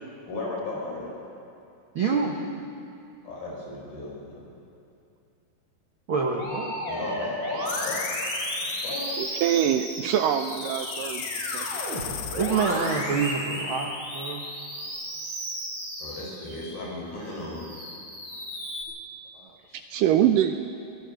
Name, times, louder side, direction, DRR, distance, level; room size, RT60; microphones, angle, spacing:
voice 1, 0.3-1.1 3.2-4.5 6.9-8.0 8.6-9.1 16.0-17.7, left 2 dB, 70° left, -3 dB, 7.4 m, -35 dB
voice 2, 1.9-2.4 6.1-6.8 12.4-14.4 19.3-19.9, right 5 dB, 65° right, 0 dB, 1.3 m, -27 dB
Musical instrument, 6.4-16.8 17.3-18.8, equal, 30° right, 7.9 m, -34 dB
sound 1, 7.7-9.2 10.4-13.0, left 11 dB, 85° left, 3.0 m, -37 dB
voice 3, 9.2-11.3 11.5-11.7 12.0-12.2 19.7-20.6, right 10 dB, 80° right, 7 dB, 2.0 m, -24 dB
24.5 x 18.5 x 6.5 m, 2.6 s
omnidirectional pair, 4.3 m